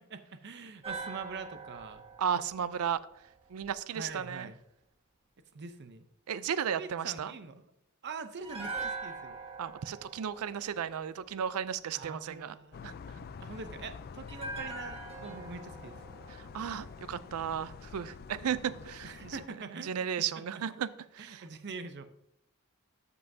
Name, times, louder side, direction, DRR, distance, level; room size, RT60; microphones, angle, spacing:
voice 1, 0.1-2.0 3.9-4.6 5.5-6.1 6.8-7.5 8.0-9.4 11.9-12.8 13.4-16.0 19.0-20.0 20.3-20.4 21.2-22.1, right 4 dB, 55° right, 9 dB, 0.7 m, -44 dB
sound 1, 0.8-4.0 8.4-11.6 14.3-17.5 17.8-17.9, right 4 dB, 25° right, 1.6 m, -43 dB
voice 2, 2.2-3.0 3.5-4.5 6.3-7.3 9.6-12.5 12.8-13.2 16.5-19.4 19.8-20.9 21.1-21.4, right 8 dB, 80° right, 16 dB, 0.4 m, -34 dB
sound 2, 12.7-19.5, left 5 dB, 45° left, 0.3 m, -47 dB
13.0 x 5.5 x 2.7 m, 0.77 s
head